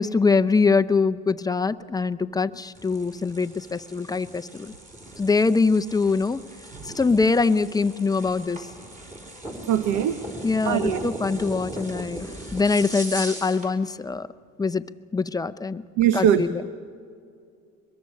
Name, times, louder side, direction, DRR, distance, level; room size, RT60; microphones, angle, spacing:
voice 1, 0.0-4.7 5.2-6.4 6.9-8.6 10.4-14.3 14.6-14.8 15.1-15.8 16.1-16.7, left 4 dB, 10° left, 11 dB, 0.5 m, -23 dB
sound 1, 2.7-13.7, right 1 dB, 25° right, 4.3 m, -39 dB
voice 2, 9.7-10.1 10.6-11.0 16.0-16.4, right 10 dB, 90° right, 10 dB, 1.0 m, -20 dB
24.0 x 22.0 x 6.6 m, 2.4 s
cardioid pair, 125°, 30 cm